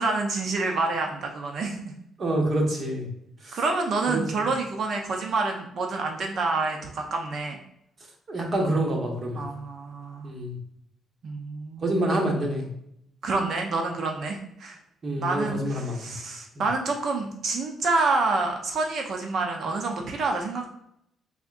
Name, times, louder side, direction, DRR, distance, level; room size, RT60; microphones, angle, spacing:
voice 1, 0.0-1.9 3.5-7.6 9.3-10.3 11.2-12.0 13.2-14.8 15.2-20.7, right 3 dB, 60° right, 2 dB, 0.6 m, -28 dB
voice 2, 2.2-3.1 3.4-3.6 4.1-4.4 8.3-9.4 10.2-10.6 11.8-12.7 15.0-16.1, right 1 dB, 45° right, 0 dB, 1.1 m, -27 dB
3.6 x 3.6 x 2.5 m, 0.76 s
cardioid pair, 90°, 0 cm